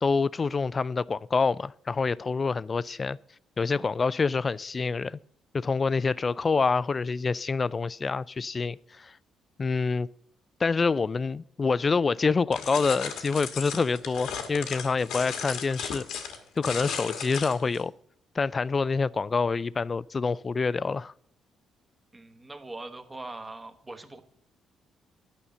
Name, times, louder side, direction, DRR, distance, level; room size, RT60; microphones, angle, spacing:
voice 1, 0.0-3.2 3.6-5.2 5.5-9.1 9.6-10.1 10.6-16.0 16.6-17.9 18.4-21.1, left 4 dB, 35° left, 0.3 m, -26 dB
sound 1, 12.5-17.8, left 7 dB, 85° left, 1.4 m, -36 dB
voice 2, 22.1-24.2, right 2 dB, 20° right, 1.2 m, -42 dB
9.9 x 5.7 x 6.7 m
cardioid pair, 90°, 0 cm